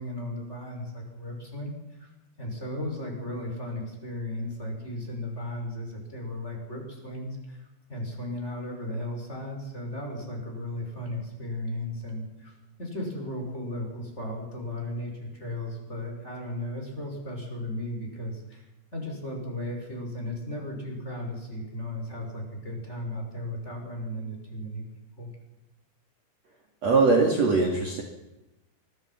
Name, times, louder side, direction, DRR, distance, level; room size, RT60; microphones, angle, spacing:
voice 1, 0.0-1.7 2.0-2.1 2.4-18.7 18.9-24.8 25.2-25.3, left 1 dB, 15° left, 1 dB, 6.4 m, -35 dB
voice 2, 26.8-28.0, right 3 dB, 45° right, 1 dB, 3.1 m, -21 dB
25.5 x 23.0 x 5.9 m, 0.96 s
omnidirectional pair, 5.1 m